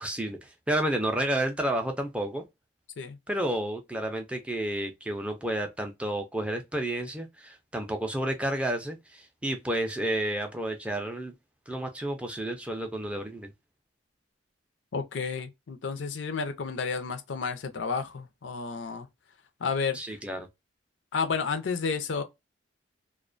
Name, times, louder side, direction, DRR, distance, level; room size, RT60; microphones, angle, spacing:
voice 1, 0.0-2.4 3.3-11.3 11.7-13.5 19.9-20.5, right 1 dB, 5° right, 0.3 m, -31 dB
voice 2, 14.9-19.1 19.6-20.0 21.1-22.2, left 5 dB, 75° left, 0.5 m, -31 dB
2.4 x 2.1 x 2.4 m
head